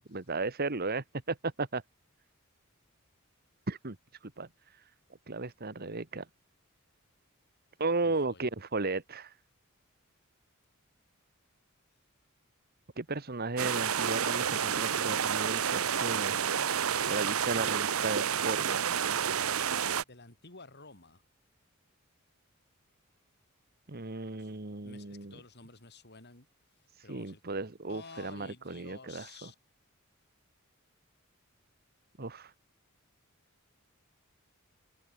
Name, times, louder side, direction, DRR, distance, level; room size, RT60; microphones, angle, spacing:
voice 1, 0.1-1.8 3.7-3.9 4.2-4.5 5.3-6.2 7.8-9.3 13.0-16.5 16.8-19.1 23.9-25.3 27.0-29.5 32.2-32.5, right 3 dB, 45° right, 1.7 m, -35 dB
voice 2, 8.0-8.5 20.0-21.2 24.4-24.5 24.8-26.5 27.0-27.4 27.8-29.5, left 3 dB, 50° left, 6.5 m, -52 dB
sound 1, 13.6-20.0, right 8 dB, 90° right, 0.9 m, -30 dB
head